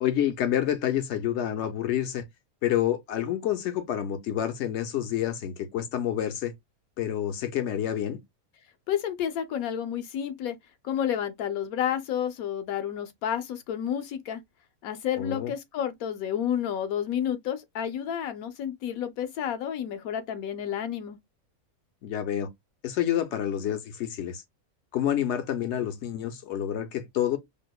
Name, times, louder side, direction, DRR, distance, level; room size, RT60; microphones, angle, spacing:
voice 1, 0.0-2.3 2.6-6.5 7.0-8.2 15.2-15.5 22.0-22.5 22.8-24.4 24.9-27.4, left 11 dB, 65° left, 0.7 m, -28 dB
voice 2, 8.9-10.6 10.8-14.4 14.8-21.2, left 9 dB, 80° left, 1.1 m, -30 dB
5.1 x 2.1 x 2.2 m
omnidirectional pair, 1.5 m